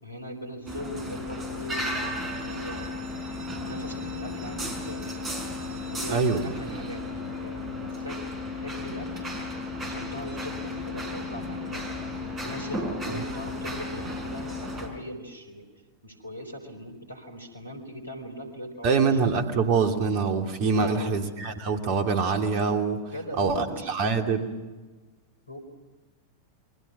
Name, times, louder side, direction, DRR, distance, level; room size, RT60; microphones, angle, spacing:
voice 1, 0.0-1.8 2.2-3.1 3.7-5.1 5.8-8.2 8.5-9.3 9.8-11.9 12.4-15.7 16.0-19.2 20.7-21.2 23.1-23.9 25.5-25.6, equal, 85° left, 8 dB, 4.4 m, -40 dB
sound 1, 0.7-14.9, left 2 dB, 25° right, 5.4 m, -34 dB
voice 2, 6.1-6.4 18.8-23.0 23.4-24.5, right 5 dB, 45° right, 5 dB, 2.8 m, -24 dB
28.5 x 23.5 x 6.1 m, 1.3 s
figure-of-eight pair, 90°, 0 cm